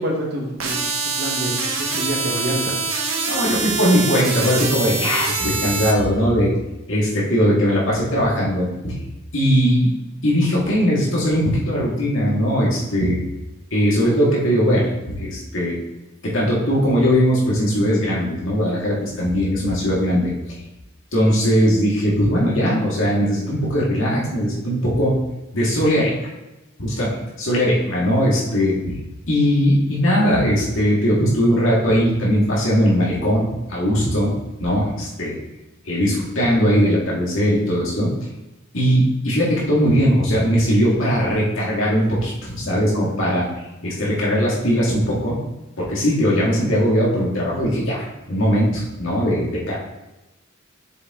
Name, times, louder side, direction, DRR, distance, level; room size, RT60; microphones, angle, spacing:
voice 1, 0.0-1.5 1.8-2.7, right 1 dB, 50° right, 0 dB, 1.4 m, -27 dB
sound 1, 0.6-5.9, right 4 dB, 90° right, 1.3 m, -24 dB
voice 2, 3.3-6.5 6.9-9.0 9.3-9.9 10.2-13.3 13.7-15.8 16.2-20.3 21.1-25.2 25.5-26.2 26.8-29.0 29.3-34.3 34.6-35.3 35.8-38.1 38.7-43.5 43.8-45.4 45.8-49.8, equal, 75° left, -5 dB, 2.1 m, -19 dB
6.6 x 4.5 x 3.8 m, 1.0 s
head